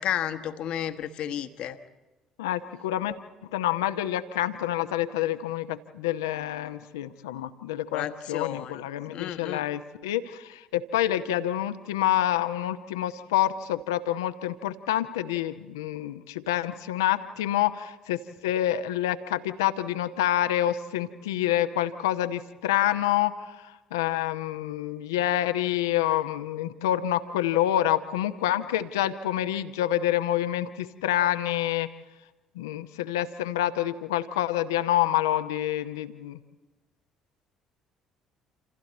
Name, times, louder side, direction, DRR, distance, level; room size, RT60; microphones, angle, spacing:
voice 1, 0.0-1.8 7.9-9.7, left 10 dB, 55° left, 9 dB, 1.2 m, -32 dB
voice 2, 2.4-3.2 3.5-31.9 32.6-36.4, left 12 dB, 70° left, 10 dB, 0.9 m, -27 dB
28.0 x 28.0 x 4.2 m, 1.1 s
figure-of-eight pair, 50°, 2 cm